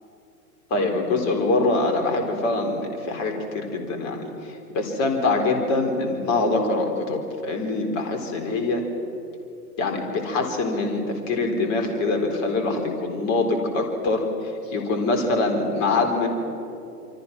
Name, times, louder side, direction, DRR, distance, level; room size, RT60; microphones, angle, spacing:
voice 1, 0.7-8.8 9.8-14.2 14.7-16.3, left 3 dB, 35° left, 4 dB, 4.1 m, -24 dB
28.0 x 25.0 x 6.1 m, 2.7 s
figure-of-eight pair, 105°, 49 cm